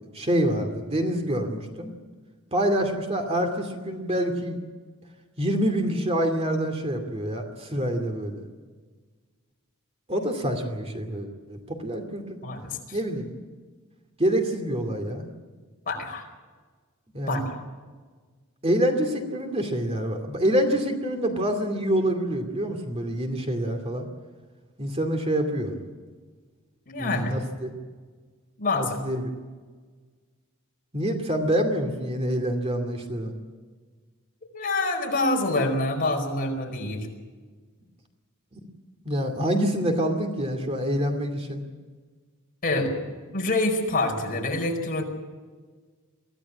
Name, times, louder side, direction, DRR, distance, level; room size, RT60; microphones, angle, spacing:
voice 1, 0.1-1.9 2.5-4.6 5.4-8.4 10.1-12.4 12.9-13.3 14.2-15.3 17.1-17.4 18.6-24.1 24.8-25.8 27.0-27.7 28.7-29.3 30.9-33.3 39.0-41.6, equal, 30° right, 5 dB, 2.5 m, -26 dB
voice 2, 12.4-13.0 15.9-16.3 17.2-17.4 26.9-27.3 28.6-29.0 34.5-37.1 42.6-43.0 43.3-45.0, left 2 dB, 40° left, 2 dB, 4.8 m, -26 dB
24.0 x 16.0 x 8.5 m, 1.5 s
head